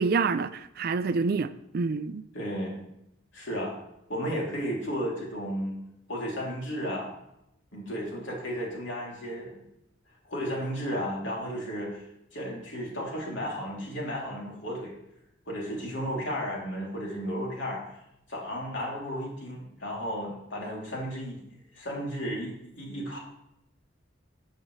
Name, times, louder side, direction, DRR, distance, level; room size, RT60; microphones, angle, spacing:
voice 1, 0.0-2.2, right 4 dB, 50° right, 0.4 m, -27 dB
voice 2, 2.3-2.8 3.3-3.8 4.1-5.8 6.1-7.1 7.7-9.7 10.2-12.0 12.3-14.9 15.5-17.8 18.3-23.2, equal, 70° left, 3.0 m, -34 dB
13.0 x 6.6 x 3.2 m
head